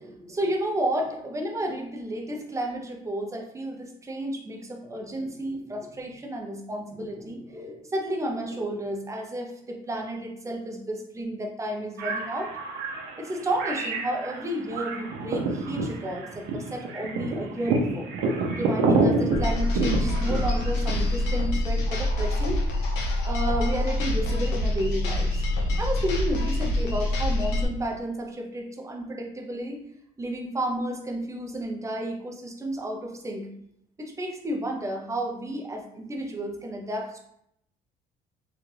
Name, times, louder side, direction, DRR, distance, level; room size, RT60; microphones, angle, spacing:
voice 1, 0.0-12.5 13.2-18.1 18.6-22.6 23.2-25.4 25.8-29.8 30.2-33.5 34.0-37.2, right 1 dB, 20° right, 2 dB, 0.6 m, -32 dB
sound 1, 12.0-21.4, right 3 dB, 90° right, 0.6 m, -28 dB
sound 2, 19.3-27.6, left 1 dB, 90° left, 0.7 m, -26 dB
2.9 x 2.4 x 3.1 m, 0.74 s
cardioid pair, 110°, 17 cm